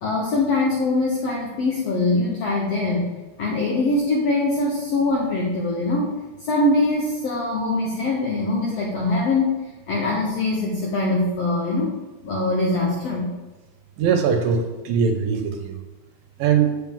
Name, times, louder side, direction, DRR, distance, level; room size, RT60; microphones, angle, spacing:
voice 1, 0.0-3.1 3.4-6.1 6.4-9.6 9.9-11.9 12.2-13.3, left 2 dB, 80° left, -2 dB, 1.4 m, -22 dB
voice 2, 14.0-15.8 16.4-16.7, right 6 dB, 75° right, 6 dB, 2.3 m, -21 dB
9.0 x 7.5 x 3.7 m, 1.2 s
omnidirectional pair, 4.5 m